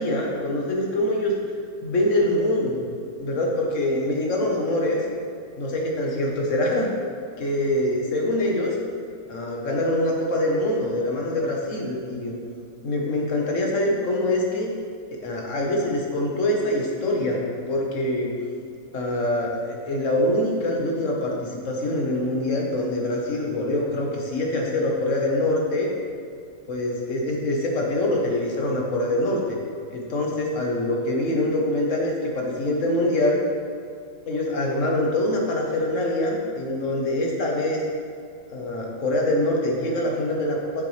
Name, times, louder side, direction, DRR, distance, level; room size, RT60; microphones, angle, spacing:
voice 1, 0.0-1.3 1.8-2.9 3.2-5.0 5.6-6.9 7.4-8.7 9.3-12.4 12.8-14.7 15.1-18.3 18.9-25.9 26.7-29.6 29.9-33.4 34.3-37.8 38.5-40.8, left 1 dB, 50° left, -1 dB, 1.4 m, -24 dB
7.8 x 7.3 x 3.3 m, 2.4 s
omnidirectional pair, 1.9 m